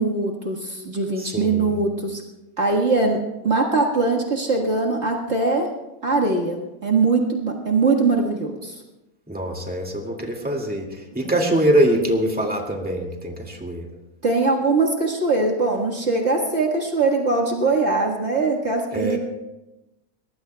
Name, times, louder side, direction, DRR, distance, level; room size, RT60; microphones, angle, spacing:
voice 1, 0.0-2.2 2.6-3.2 3.4-5.7 6.0-8.8 11.2-11.4 14.2-19.2, right 3 dB, 50° right, -1 dB, 1.9 m, -21 dB
voice 2, 1.2-1.7 9.3-13.9 18.9-19.2, right 1 dB, 5° right, 1 dB, 2.0 m, -23 dB
23.0 x 19.5 x 2.3 m, 0.99 s
omnidirectional pair, 1.5 m